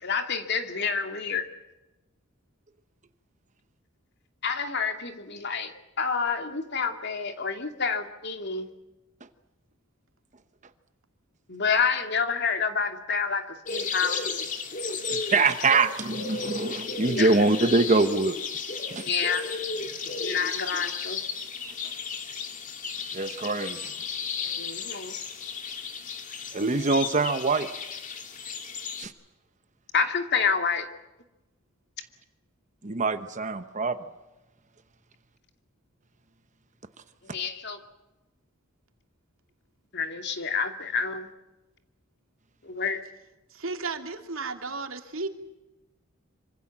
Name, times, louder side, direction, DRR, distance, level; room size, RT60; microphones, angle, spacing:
voice 1, 0.0-1.4 4.4-5.7 6.0-8.7 11.5-14.3 17.1-17.3 19.0-19.4 20.2-21.2 24.4-25.2 29.9-30.9 37.3-37.8 39.9-41.3 42.6-43.0, left 5 dB, 55° left, 6 dB, 2.6 m, -28 dB
sound 1, 13.7-29.0, left 5 dB, 40° left, 2.4 m, -34 dB
voice 2, 15.1-18.4 18.9-19.0 23.1-23.8 26.5-27.7 29.0-29.1 32.8-34.0, right 3 dB, 35° right, 10 dB, 1.0 m, -24 dB
voice 3, 43.5-45.3, right 3 dB, 75° right, 5 dB, 2.8 m, -34 dB
26.5 x 25.0 x 7.4 m, 1.0 s
head